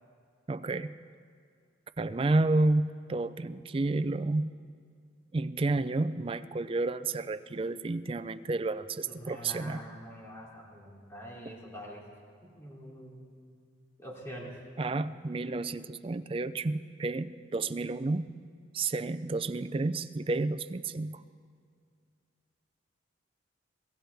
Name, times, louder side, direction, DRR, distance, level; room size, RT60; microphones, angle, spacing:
voice 1, 0.5-1.0 2.0-4.5 5.3-9.8 14.8-18.3 18.7-21.2, right 2 dB, 30° right, 12 dB, 0.4 m, -30 dB
voice 2, 9.1-12.1 12.4-13.2 14.0-14.6, equal, 15° left, -4 dB, 3.0 m, -45 dB
24.5 x 16.5 x 3.5 m, 2.2 s
head